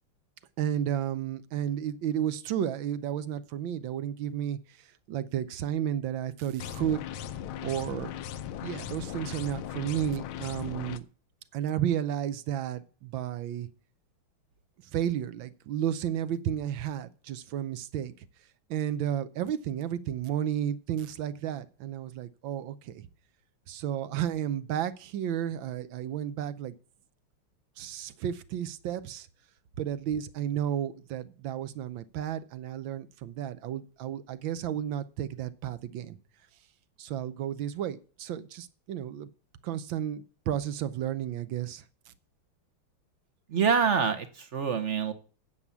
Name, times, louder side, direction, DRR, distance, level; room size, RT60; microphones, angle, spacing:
voice 1, 0.6-7.0 7.6-8.1 8.6-11.0 11.5-13.7 14.9-18.1 18.7-23.1 23.7-26.7 27.8-29.3 29.8-36.2 37.0-39.3 39.6-42.1, right 10 dB, 70° right, 15 dB, 1.4 m, -32 dB
sound 1, 6.6-11.0, left 10 dB, 75° left, 1.5 m, -38 dB
voice 2, 43.5-45.1, right 6 dB, 50° right, 10 dB, 0.9 m, -26 dB
9.6 x 7.2 x 8.3 m, 0.39 s
omnidirectional pair, 2.4 m